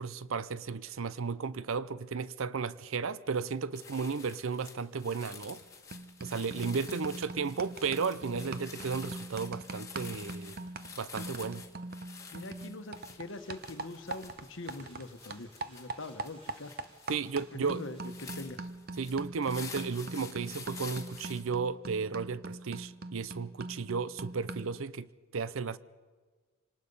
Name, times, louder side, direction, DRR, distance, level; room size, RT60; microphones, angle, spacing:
voice 1, 0.0-5.6 6.2-10.6 11.0-11.6 17.1-17.8 19.0-25.8, right 5 dB, 70° right, 0.6 m, -34 dB
sound 1, 3.3-3.5 3.7-21.4, left 5 dB, 15° left, 1.9 m, -49 dB
sound 2, 5.4-5.6 5.9-15.1 15.3-24.8, right 2 dB, 45° right, 0.8 m, -43 dB
voice 2, 12.3-16.8 17.5-18.7, left 2 dB, 60° left, 1.2 m, -43 dB
sound 3, 12.9-18.5, equal, 25° right, 6.4 m, -62 dB
26.5 x 19.0 x 5.5 m
head